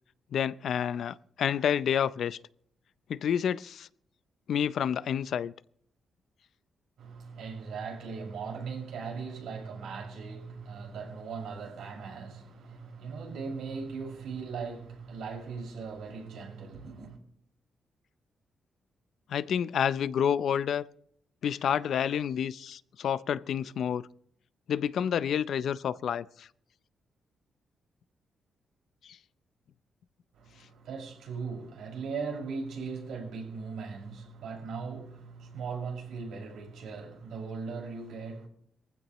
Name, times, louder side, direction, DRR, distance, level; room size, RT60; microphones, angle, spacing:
voice 1, 0.3-2.4 3.1-3.9 4.5-5.5 19.3-20.8 21.4-24.1 24.7-26.5, left 8 dB, 65° left, 0.5 m, -29 dB
voice 2, 7.0-17.2 30.3-38.5, right 5 dB, 90° right, 5.8 m, -39 dB
22.5 x 15.0 x 3.1 m
cardioid pair, 130°, 0 cm